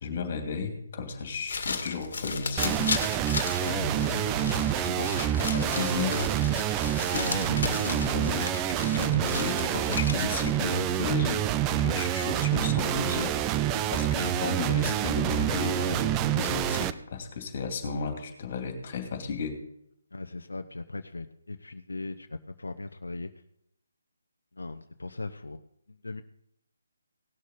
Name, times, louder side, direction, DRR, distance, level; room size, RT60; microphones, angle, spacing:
voice 1, 0.0-2.9 3.6-6.3 7.1-11.4 11.8-19.6, left 4 dB, 40° left, 5 dB, 2.7 m, -34 dB
sound 1, 1.3-10.5, left 4 dB, 60° left, 1.9 m, -35 dB
sound 2, 2.6-16.9, right 12 dB, 15° right, 0.4 m, -27 dB
voice 2, 20.1-23.3 24.5-25.6 25.9-26.2, left 2 dB, 90° left, 8 dB, 0.8 m, -39 dB
18.0 x 6.6 x 4.2 m, 0.77 s
figure-of-eight pair, 155°, 0 cm